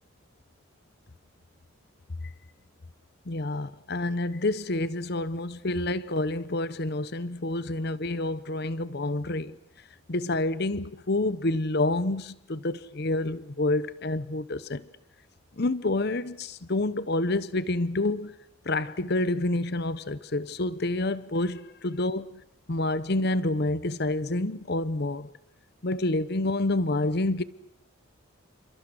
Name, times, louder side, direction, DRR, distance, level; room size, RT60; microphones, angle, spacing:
voice 1, 3.3-9.5 10.1-14.9 15.6-18.3 18.6-22.3 22.7-25.3 25.8-27.4, left 2 dB, 55° left, 0.9 m, -28 dB
29.0 x 27.0 x 6.4 m
head